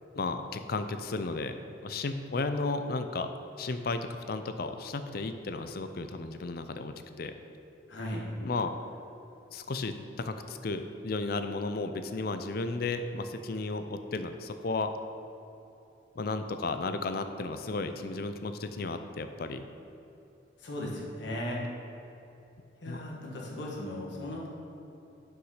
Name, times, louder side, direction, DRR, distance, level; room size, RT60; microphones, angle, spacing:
voice 1, 0.1-1.5 1.8-3.3 3.6-7.3 8.4-8.7 9.5-14.9 16.2-19.6 22.9-23.0, left 3 dB, 50° left, 8 dB, 0.4 m, -34 dB
voice 2, 7.9-8.3 20.6-21.6 22.8-24.5, left 1 dB, 65° left, -3 dB, 1.5 m, -37 dB
6.2 x 5.8 x 5.6 m, 2.9 s
head